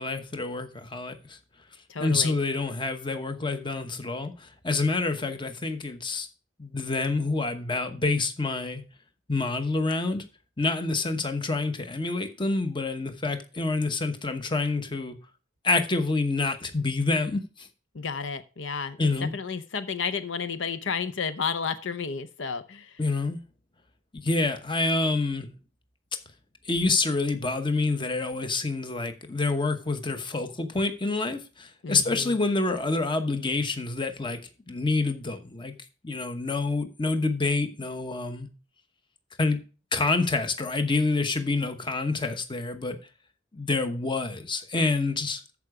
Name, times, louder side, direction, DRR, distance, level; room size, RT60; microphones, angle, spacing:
voice 1, 0.0-1.4 2.0-6.3 6.6-8.8 9.3-10.2 10.6-15.2 15.6-17.7 19.0-19.3 23.0-23.4 24.1-25.5 26.7-34.4 34.7-35.7 36.0-38.5 39.4-39.6 39.9-43.0 43.5-45.4, left 3 dB, 25° left, 1.0 m, -27 dB
voice 2, 1.9-2.4 17.9-23.0 31.8-32.4, left 5 dB, 75° left, 0.7 m, -32 dB
13.5 x 4.9 x 4.9 m
head